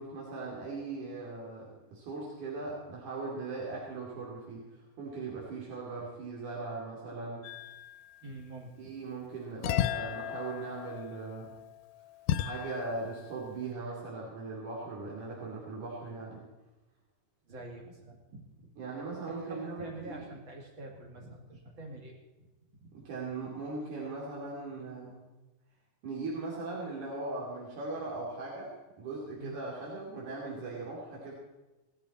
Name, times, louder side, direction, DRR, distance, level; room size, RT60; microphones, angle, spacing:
voice 1, 0.0-7.5 8.8-11.6 12.4-16.4 18.8-20.2 22.9-25.2 26.0-31.3, right 3 dB, 70° right, -4 dB, 4.2 m, -39 dB
sound 1, 7.4-8.2 9.6-13.2, left 12 dB, 85° left, 2.1 m, -35 dB
voice 2, 8.2-8.7 17.5-18.7 19.2-22.5 22.8-22.9 29.4-29.6, right 2 dB, 40° right, 0 dB, 3.0 m, -46 dB
19.0 x 12.5 x 4.3 m, 1.1 s
omnidirectional pair, 3.6 m